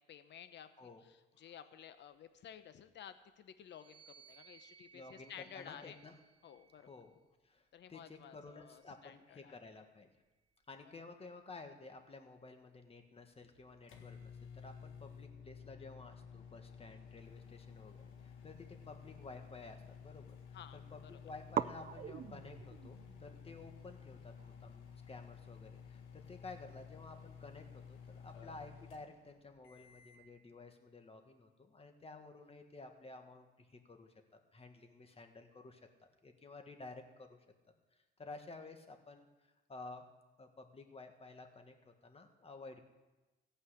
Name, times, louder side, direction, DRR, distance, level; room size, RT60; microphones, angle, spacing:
voice 1, 0.0-6.0 6.4-6.9 7.7-9.6 20.5-21.1, left 9 dB, 65° left, 11 dB, 0.8 m, -54 dB
sound 1, 3.6-7.2 8.0-9.6, right 7 dB, 65° right, 1.8 m, -64 dB
voice 2, 4.9-6.1 6.8-7.2 7.4-10.1 10.7-20.3 20.7-34.1 34.5-35.8 36.2-37.5 37.9-40.1 40.4-42.8, left 3 dB, 30° left, 5 dB, 1.7 m, -53 dB
sound 2, 13.3-30.3, left 7 dB, 85° left, 1.6 m, -54 dB
sound 3, 18.0-19.8 20.1-20.7 21.0-21.1 21.5-28.3, right 9 dB, 45° right, 0.5 m, -46 dB
15.5 x 5.6 x 8.3 m, 1.1 s
cardioid pair, 90°, 20 cm